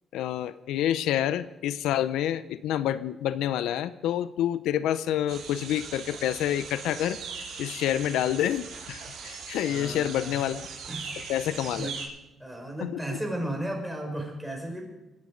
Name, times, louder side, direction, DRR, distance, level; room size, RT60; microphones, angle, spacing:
voice 1, 0.1-7.2 7.6-10.6 11.3-11.9 12.8-13.2, left 11 dB, 90° left, 14 dB, 0.6 m, -28 dB
sound 1, 5.3-12.1, right 5 dB, 70° right, 7.0 m, -40 dB
voice 2, 9.6-10.5 10.9-11.2 11.5-12.0 12.4-14.9, right 1 dB, 5° right, 2 dB, 5.5 m, -35 dB
24.5 x 9.7 x 5.2 m, 1.0 s
cardioid pair, 90°, 0 cm